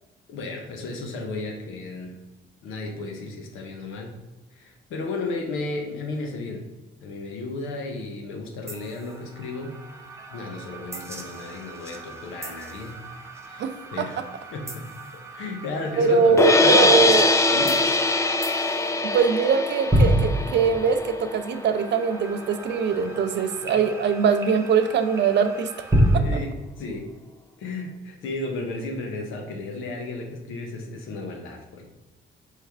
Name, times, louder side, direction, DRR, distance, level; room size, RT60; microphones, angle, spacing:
voice 1, 0.3-2.2 2.6-4.2 4.5-6.7 7.0-9.8 10.3-13.0 13.5-14.2 14.5-14.9 15.3-17.1 17.5-17.8 23.6-23.8 26.1-27.1 27.6-31.9, left 2 dB, 90° left, 3 dB, 0.9 m, -34 dB
sound 1, 8.7-26.2, equal, 15° right, 0.7 m, -30 dB
voice 2, 13.6-14.2 16.0-17.3 19.1-25.7 26.1-26.2, right 5 dB, 60° right, 8 dB, 0.5 m, -22 dB
sound 2, 16.4-22.5, left 2 dB, 15° left, 0.4 m, -22 dB
4.6 x 3.3 x 3.4 m, 1.0 s
cardioid pair, 90°, 20 cm